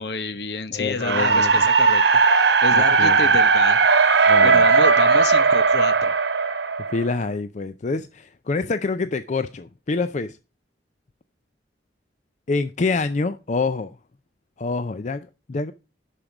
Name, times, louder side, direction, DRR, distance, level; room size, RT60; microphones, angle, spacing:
voice 1, 0.0-3.8 4.2-6.1, left 3 dB, 70° left, 1.1 m, -29 dB
voice 2, 0.7-1.7 2.7-3.2 4.3-4.7 6.9-10.4 12.5-14.0 14.6-15.7, left 3 dB, 40° left, 0.5 m, -26 dB
sound 1, 1.0-7.2, right 4 dB, 70° right, 1.0 m, -17 dB
11.0 x 5.1 x 6.0 m
head